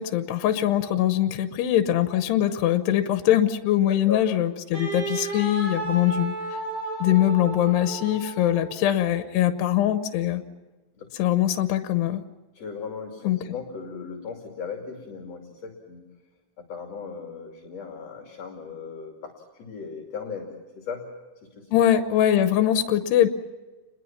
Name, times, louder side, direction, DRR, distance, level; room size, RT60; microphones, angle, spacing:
voice 1, 0.0-6.4 7.0-10.4 11.2-12.2 13.2-13.4 21.7-23.3, left 12 dB, 90° left, 9 dB, 3.1 m, -22 dB
voice 2, 3.9-4.2 10.9-11.1 12.5-16.1 16.6-20.5 20.8-21.1 21.4-21.7, left 5 dB, 45° left, 2 dB, 3.4 m, -37 dB
Wind instrument woodwind instrument, 4.7-8.8, right 2 dB, 50° right, 8.7 m, -33 dB
29.5 x 21.5 x 5.9 m, 1.3 s
omnidirectional pair, 4.6 m